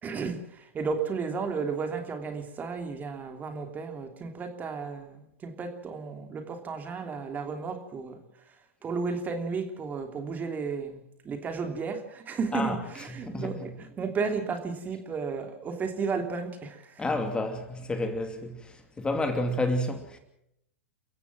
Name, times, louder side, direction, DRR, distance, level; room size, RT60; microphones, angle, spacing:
voice 1, 0.0-17.1, right 5 dB, 25° right, 3.1 m, -33 dB
voice 2, 17.0-18.6 19.0-20.2, left 2 dB, 15° left, 2.7 m, -29 dB
30.0 x 15.5 x 6.1 m
hypercardioid pair, 100°, 7 cm